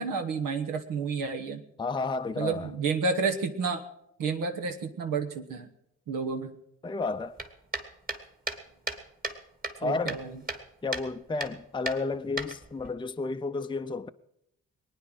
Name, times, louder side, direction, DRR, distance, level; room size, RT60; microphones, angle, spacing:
voice 1, 0.0-1.6 2.4-3.8 4.2-5.7 6.1-6.5 9.8-10.3, right 4 dB, 75° right, 1.3 m, -30 dB
voice 2, 1.8-2.7 6.8-7.4 9.8-10.2 10.8-14.1, left 3 dB, 15° left, 0.6 m, -32 dB
sound 1, 7.4-9.4 9.6-10.6 10.9-11.1 11.4-11.5 11.9-12.9, right 2 dB, 25° right, 2.1 m, -35 dB
20.0 x 9.4 x 6.3 m
hypercardioid pair, 45°, 33 cm